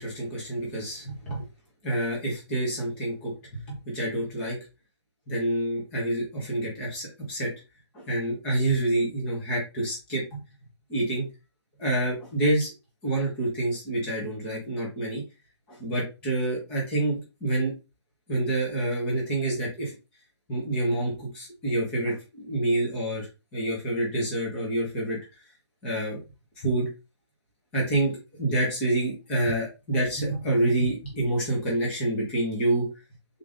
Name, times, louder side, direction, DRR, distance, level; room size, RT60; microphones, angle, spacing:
voice 1, 0.0-1.4 1.8-3.3 3.7-4.6 5.3-7.5 7.9-10.2 10.9-11.3 11.8-12.7 13.0-15.2 15.7-17.7 18.3-19.9 20.5-23.3 23.5-25.2 25.8-26.2 26.6-26.9 27.7-28.1 28.4-32.9, right 1 dB, 5° left, -4 dB, 0.6 m, -27 dB
3.6 x 2.4 x 3.4 m, 0.28 s
hypercardioid pair, 175°, 15 cm